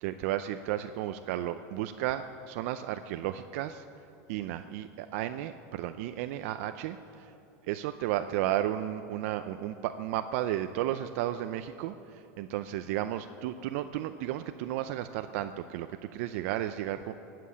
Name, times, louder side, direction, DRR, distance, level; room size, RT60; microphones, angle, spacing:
voice 1, 0.0-3.8 4.3-7.3 7.7-17.1, right 12 dB, 65° right, 9 dB, 0.5 m, -33 dB
19.0 x 7.6 x 8.7 m, 2.9 s
supercardioid pair, 140°, 8 cm